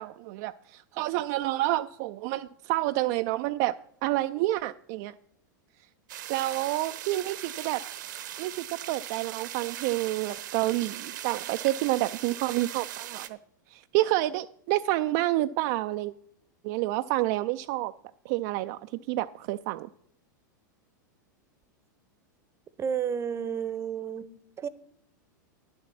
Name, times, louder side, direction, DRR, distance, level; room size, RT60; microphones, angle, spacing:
voice 1, 0.0-3.7 4.0-5.1 6.3-7.8 8.4-13.4 13.7-16.1 16.6-17.9 18.3-18.8 19.1-19.9, right 17 dB, 50° right, 0.3 m, -29 dB
sound 1, 6.1-13.3, right 12 dB, 70° right, 0.8 m, -39 dB
voice 2, 22.8-24.3 24.6-24.7, right 7 dB, 25° right, 0.7 m, -31 dB
10.0 x 7.0 x 5.9 m
hypercardioid pair, 95°, 11 cm